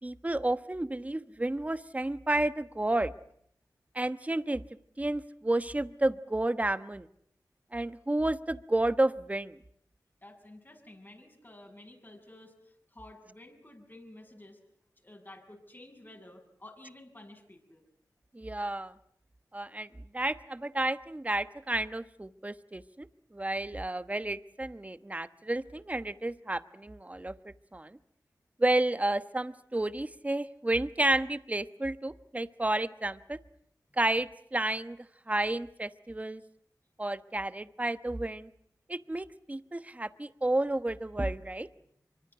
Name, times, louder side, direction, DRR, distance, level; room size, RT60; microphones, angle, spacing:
voice 1, 0.0-3.1 3.9-4.6 5.0-7.1 7.7-9.6 18.3-18.9 19.5-23.1 23.3-27.3 27.7-28.0 28.6-33.4 34.0-35.0 35.3-36.4 37.0-38.5 38.9-41.7, right 1 dB, 20° right, 12 dB, 1.2 m, -31 dB
voice 2, 10.2-14.6 15.0-17.9, left 1 dB, 30° left, 3 dB, 7.1 m, -52 dB
24.5 x 24.5 x 8.1 m, 0.68 s
cardioid pair, 55°, 7 cm